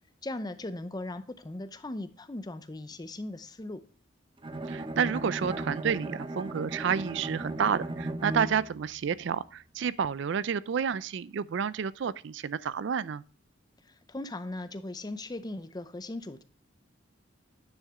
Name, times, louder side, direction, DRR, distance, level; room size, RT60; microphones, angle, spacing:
voice 1, 0.2-3.8 13.9-16.4, left 2 dB, 20° left, 0.6 m, -38 dB
Bowed string instrument, 4.4-8.8, right 2 dB, 25° right, 0.9 m, -36 dB
voice 2, 4.6-13.2, right 7 dB, 65° right, 0.4 m, -30 dB
9.6 x 6.4 x 3.6 m
head